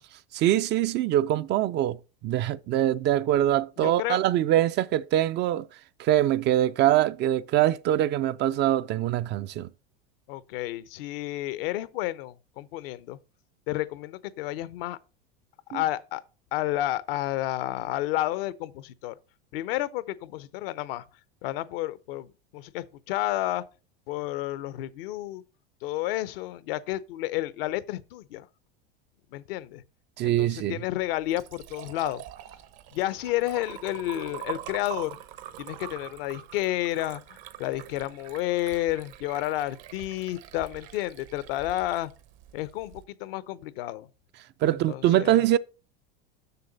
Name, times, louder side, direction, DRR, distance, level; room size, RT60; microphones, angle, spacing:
voice 1, 0.3-5.7 6.0-9.7 15.7-15.8 30.2-30.8 44.6-45.6, right 12 dB, 40° right, 0.4 m, -23 dB
voice 2, 3.8-4.2 10.3-13.2 13.7-15.0 15.7-16.2 16.5-19.1 19.5-21.0 21.4-23.6 24.1-25.4 25.8-28.5 29.3-29.8 30.2-32.2 32.9-35.2 35.6-37.2 37.6-42.1 42.5-44.1 44.9-45.4, left 15 dB, 75° left, 0.7 m, -31 dB
Liquid, 31.0-43.0, right 12 dB, 60° right, 0.9 m, -44 dB
6.8 x 6.5 x 3.9 m
hypercardioid pair, 100°, 29 cm